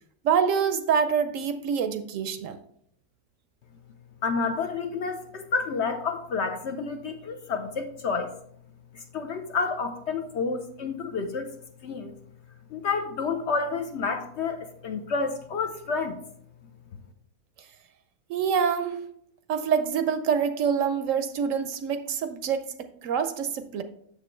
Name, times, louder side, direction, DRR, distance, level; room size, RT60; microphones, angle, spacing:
voice 1, 0.2-2.6 18.3-19.0 19.5-23.8, right 7 dB, 70° right, 0.9 m, -26 dB
voice 2, 4.2-8.3 8.9-11.5 11.8-12.1 12.7-16.2, left 4 dB, 60° left, 0.8 m, -29 dB
7.2 x 6.7 x 3.2 m
omnidirectional pair, 1.5 m